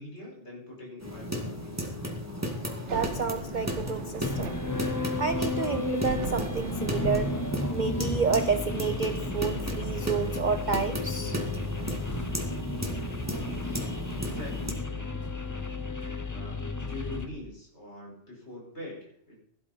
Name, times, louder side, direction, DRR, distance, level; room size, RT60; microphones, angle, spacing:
voice 1, 0.0-1.7 14.2-14.8 15.4-15.8 16.3-19.4, left 1 dB, 55° left, -2 dB, 5.9 m, -43 dB
sound 1, 1.0-14.7, equal, 10° right, 2.2 m, -35 dB
Thunder / Rain, 2.7-15.9, right 7 dB, 65° right, 1.1 m, -43 dB
voice 2, 2.9-4.6 5.2-7.3 7.7-11.4, right 5 dB, 45° right, 9 dB, 0.7 m, -30 dB
sound 2, 4.2-17.3, left 3 dB, 15° left, 1.0 m, -33 dB
17.5 x 11.5 x 4.3 m, 0.63 s
omnidirectional pair, 1.3 m